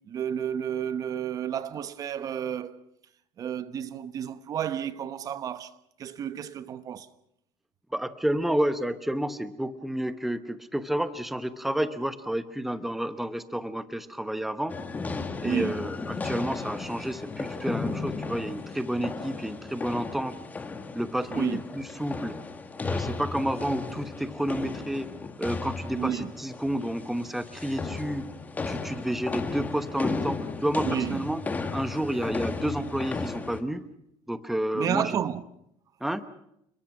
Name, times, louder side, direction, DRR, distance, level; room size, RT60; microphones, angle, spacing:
voice 1, 0.1-2.8 3.4-5.7 6.0-7.1 15.2-15.9 21.3-21.6 25.9-26.3 30.8-31.3 34.7-35.4, right 9 dB, 35° right, 1.0 m, -31 dB
voice 2, 7.9-14.7 15.4-20.3 20.9-22.4 22.8-25.1 25.4-28.2 28.7-31.4 31.7-33.8 34.3-35.2 36.0-36.2, right 1 dB, ahead, 1.0 m, -30 dB
sound 1, 14.7-33.6, left 4 dB, 15° left, 1.9 m, -35 dB
29.5 x 22.0 x 6.1 m
cardioid pair, 155°, 11 cm